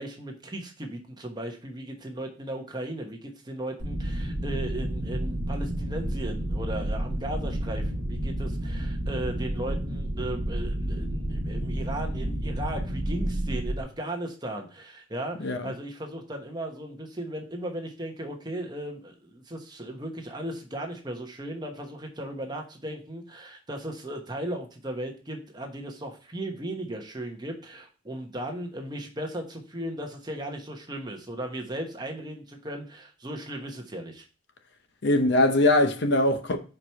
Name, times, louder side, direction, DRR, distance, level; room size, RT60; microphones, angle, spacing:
voice 1, 0.0-34.2, right 1 dB, 20° right, 1.0 m, -36 dB
sound 1, 3.8-13.8, right 1 dB, 60° right, 1.4 m, -30 dB
voice 2, 15.4-15.7 35.0-36.6, left 1 dB, 55° left, 0.7 m, -22 dB
4.9 x 4.5 x 5.6 m
head